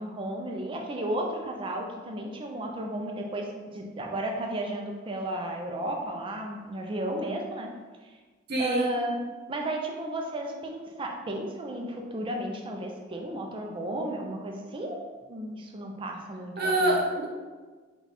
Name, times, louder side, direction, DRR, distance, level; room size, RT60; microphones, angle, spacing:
voice 1, 0.0-7.7 8.0-8.1 8.6-9.2 9.5-15.0 15.3-17.0, right 1 dB, 25° right, 2 dB, 0.4 m, -33 dB
voice 2, 8.5-8.9 16.6-17.2, right 1 dB, 55° right, -2 dB, 0.9 m, -25 dB
4.0 x 2.3 x 4.1 m, 1.4 s
head